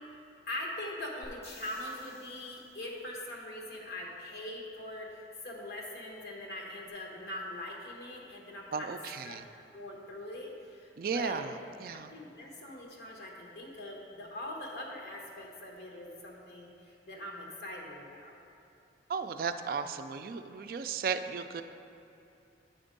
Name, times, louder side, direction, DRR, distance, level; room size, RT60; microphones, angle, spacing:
voice 1, 0.5-9.0 9.2-9.4 9.7-11.5 11.9-18.4, left 1 dB, 65° left, -2 dB, 1.1 m, -42 dB
sound 1, 1.2-3.1 6.9-7.0, left 1 dB, 35° left, 1.1 m, -55 dB
voice 2, 8.7-9.5 11.0-12.1 19.1-21.6, right 5 dB, 55° right, 9 dB, 0.3 m, -35 dB
7.8 x 4.4 x 5.2 m, 2.8 s
head